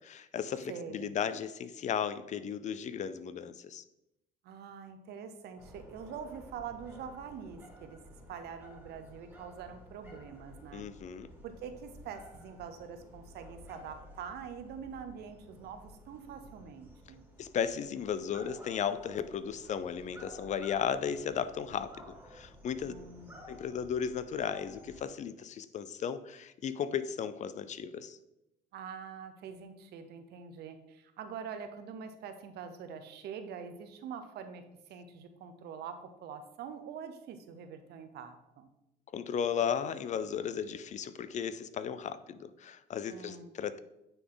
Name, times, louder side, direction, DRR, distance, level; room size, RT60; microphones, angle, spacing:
voice 1, 0.0-3.8 10.7-11.3 17.4-21.9 22.3-22.9 23.5-28.2 39.1-43.8, left 7 dB, 45° left, 14 dB, 0.4 m, -35 dB
voice 2, 0.7-1.1 4.4-8.0 8.3-10.8 11.4-17.3 22.8-23.5 28.7-38.7 43.1-43.6, right 7 dB, 75° right, 8 dB, 0.8 m, -45 dB
sound 1, 5.6-25.1, left 1 dB, 10° right, 1.9 m, -53 dB
9.0 x 3.9 x 3.9 m, 0.89 s
cardioid pair, 110°, 17 cm